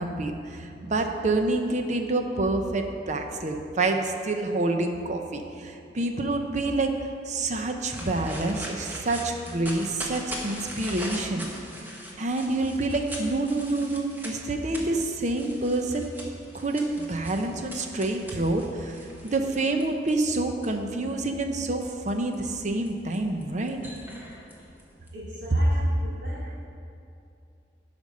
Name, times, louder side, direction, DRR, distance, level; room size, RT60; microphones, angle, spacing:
voice 1, 0.0-6.9 7.3-11.5 12.2-16.1 16.5-23.8 25.8-25.9, right 2 dB, 45° right, 5 dB, 0.7 m, -27 dB
sound 1, 7.9-20.7 21.2-25.1, equal, 10° right, 1.1 m, -41 dB
voice 2, 25.1-26.6, equal, 75° right, -8 dB, 1.8 m, -40 dB
11.5 x 5.2 x 5.3 m, 2.5 s
head